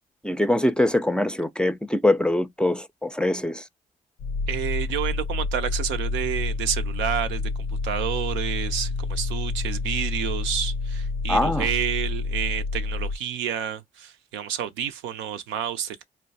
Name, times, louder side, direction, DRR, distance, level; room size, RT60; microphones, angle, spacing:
voice 1, 0.2-3.7 11.3-11.7, left 1 dB, 5° left, 0.4 m, -23 dB
sound 1, 4.2-13.2, left 3 dB, 80° left, 0.4 m, -28 dB
voice 2, 4.5-16.0, right 9 dB, 80° right, 0.4 m, -29 dB
4.3 x 2.1 x 2.7 m
hypercardioid pair, 45°, 19 cm